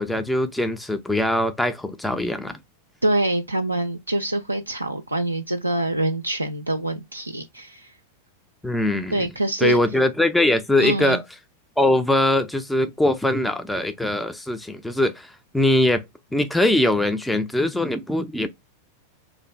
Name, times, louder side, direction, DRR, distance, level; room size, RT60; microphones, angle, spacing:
voice 1, 0.0-2.6 8.6-9.3 9.6-11.2 11.8-16.0 16.3-18.5, left 1 dB, 5° left, 0.3 m, -22 dB
voice 2, 3.0-7.9 9.1-9.8 10.8-11.2, right 1 dB, 85° right, 0.3 m, -25 dB
2.5 x 2.2 x 3.1 m
figure-of-eight pair, 90°, 0 cm